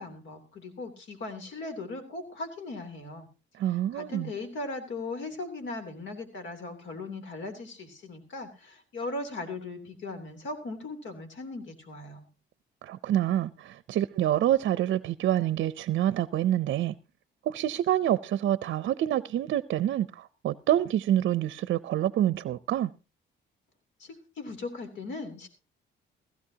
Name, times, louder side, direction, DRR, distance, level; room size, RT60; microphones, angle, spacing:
voice 1, 0.0-3.3 3.9-12.3 24.0-25.5, left 2 dB, 70° left, 3.2 m, -38 dB
voice 2, 3.6-4.3 12.8-17.0 17.5-22.9, right 12 dB, 70° right, 0.6 m, -27 dB
16.0 x 15.5 x 2.8 m
cardioid pair, 90°, 20 cm